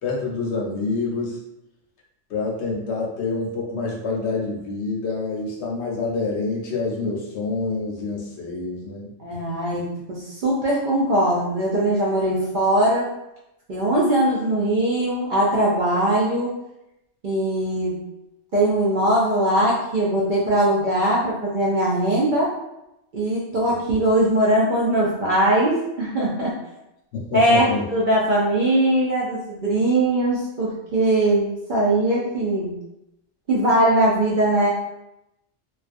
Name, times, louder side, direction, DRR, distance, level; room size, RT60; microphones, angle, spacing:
voice 1, 0.0-1.4 2.3-9.1 9.7-9.8 23.6-23.8 27.1-27.9, left 3 dB, 70° left, -2 dB, 0.9 m, -27 dB
voice 2, 9.2-13.1 13.7-16.5 17.2-17.9 18.5-22.5 23.1-26.6 27.3-32.7 33.5-34.7, right 1 dB, 60° right, -5 dB, 0.5 m, -20 dB
2.4 x 2.3 x 2.4 m, 0.88 s
omnidirectional pair, 1.2 m